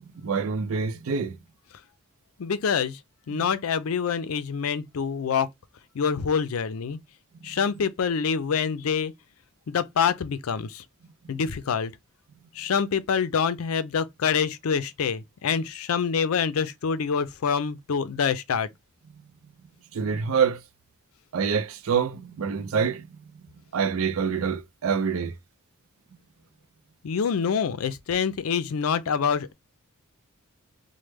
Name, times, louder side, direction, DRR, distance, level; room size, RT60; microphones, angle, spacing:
voice 1, 0.2-1.4 3.3-3.4 19.9-20.6 21.3-23.1 23.7-25.3, right 6 dB, 70° right, 0.4 m, -26 dB
voice 2, 2.4-3.0 3.3-5.5 6.0-7.0 7.4-9.1 9.7-10.8 11.3-11.9 12.6-18.7 27.0-29.5, left 6 dB, 75° left, 0.4 m, -26 dB
3.1 x 2.1 x 3.3 m
head